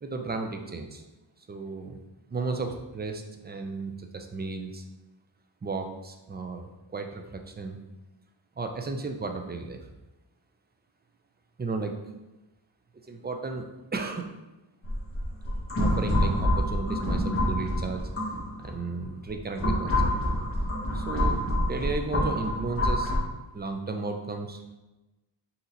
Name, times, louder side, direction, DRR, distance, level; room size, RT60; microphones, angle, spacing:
voice 1, 0.0-1.0 1.5-2.0 2.3-4.8 5.6-7.8 8.6-9.8 11.6-11.9 13.0-13.7 13.9-14.3 15.8-18.1 18.6-20.1 20.9-23.1 23.5-24.6, right 3 dB, 20° right, 5 dB, 0.4 m, -34 dB
sound 1, 14.9-18.7 19.3-23.2, equal, 30° left, 1.2 m, -27 dB
4.1 x 2.9 x 3.8 m, 1.1 s
wide cardioid pair, 85°, 46 cm